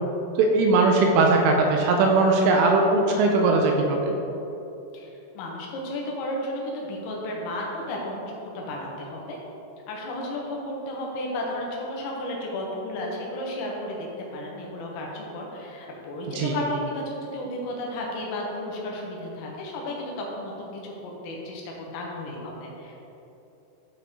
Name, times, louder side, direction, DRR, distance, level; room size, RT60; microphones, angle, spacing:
voice 1, 0.4-4.1 16.4-16.5, right 3 dB, 80° right, 1 dB, 3.0 m, -20 dB
voice 2, 4.9-9.4 9.9-23.0, left 1 dB, 80° left, -2 dB, 3.7 m, -33 dB
13.0 x 4.7 x 3.7 m, 3.0 s
omnidirectional pair, 6.0 m